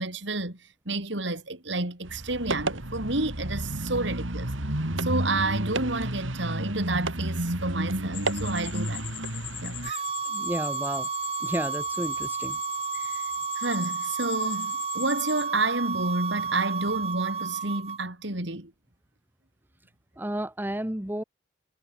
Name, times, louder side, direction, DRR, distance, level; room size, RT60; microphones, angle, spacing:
voice 1, 0.0-4.5 5.0-9.1 9.6-10.0 12.9-18.7, right 2 dB, 65° right, 3.8 m, -30 dB
sound 1, 2.0-9.9, right 1 dB, 85° right, 3.7 m, -31 dB
sound 2, 8.1-15.5, left 13 dB, 65° left, 5.2 m, -41 dB
sound 3, 9.8-18.0, right 5 dB, 30° right, 2.1 m, -32 dB
voice 2, 10.3-11.1 11.4-12.6 20.2-21.2, right 1 dB, 10° right, 1.0 m, -32 dB
head